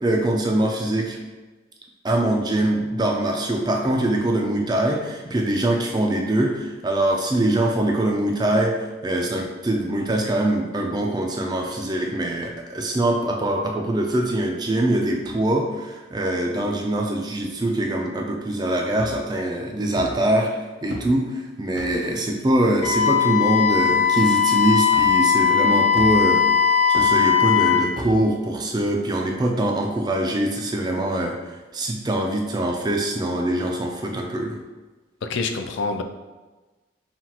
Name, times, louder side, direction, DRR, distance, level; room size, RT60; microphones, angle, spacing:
voice 1, 0.0-1.2 2.0-8.8 9.0-20.5 20.8-26.4 26.9-31.4 31.7-34.6, right 1 dB, 20° right, 1 dB, 0.4 m, -23 dB
sound 1, 19.0-19.4 19.9-20.1 20.9-21.1 21.7-21.9 22.8-23.0 23.8-23.9 24.9-25.1 25.9-26.4 26.9-27.1 27.9-28.2, right 1 dB, 65° right, 0.7 m, -35 dB
Wind instrument woodwind instrument, 22.8-27.9, left 7 dB, 35° left, 0.6 m, -19 dB
voice 2, 35.2-36.0, left 4 dB, 75° left, 6 dB, 0.4 m, -26 dB
5.7 x 2.4 x 2.9 m, 1.2 s
head